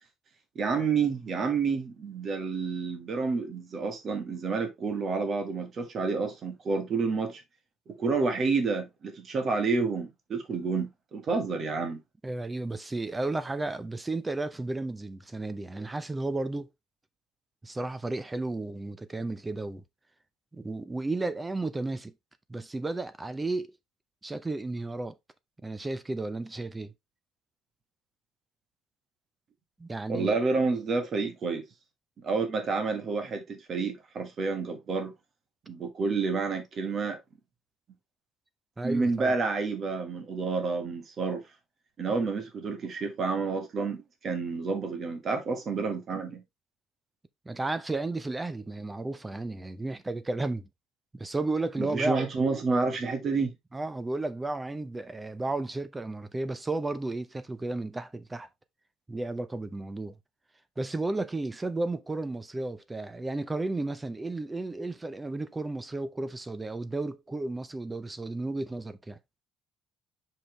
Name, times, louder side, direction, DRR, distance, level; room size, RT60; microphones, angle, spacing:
voice 1, 0.5-7.4 7.9-12.0 30.1-31.6 32.2-35.1 35.7-37.2 38.8-41.4 42.0-46.4 51.8-53.5, right 4 dB, 30° right, 1.4 m, -29 dB
voice 2, 12.2-16.7 17.6-19.8 20.5-22.1 22.5-23.8 24.2-25.2 25.6-26.9 29.8-30.3 38.8-39.3 47.5-50.7 51.1-52.3 53.7-58.5 59.1-60.1 60.8-69.2, right 2 dB, 10° right, 0.5 m, -33 dB
5.7 x 5.0 x 3.3 m
cardioid pair, 175°, 0 cm